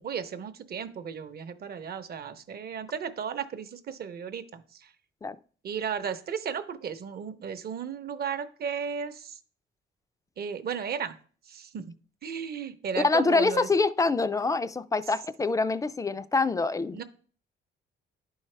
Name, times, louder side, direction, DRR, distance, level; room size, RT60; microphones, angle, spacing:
voice 1, 0.0-4.9 5.6-9.4 10.4-11.2 11.5-11.9 12.2-13.7 16.9-17.0, right 7 dB, 50° right, 0.7 m, -35 dB
voice 2, 13.0-17.0, left 3 dB, 15° left, 0.3 m, -25 dB
11.0 x 4.7 x 3.3 m
cardioid pair, 90°, 20 cm